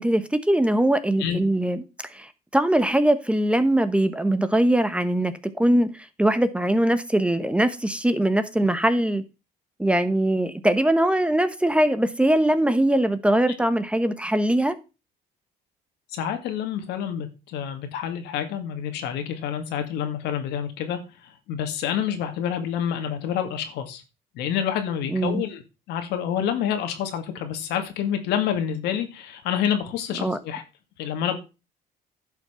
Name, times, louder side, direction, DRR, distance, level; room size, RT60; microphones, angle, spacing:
voice 1, 0.0-1.8 2.1-5.3 5.6-9.2 9.8-14.7 25.1-25.4 30.2-30.4, right 1 dB, 5° right, 1.0 m, -21 dB
voice 2, 16.1-21.0 21.5-24.0 24.3-25.6 25.9-30.6 31.0-31.4, left 9 dB, 85° left, 2.2 m, -28 dB
11.0 x 5.9 x 5.7 m
cardioid pair, 110°, 17 cm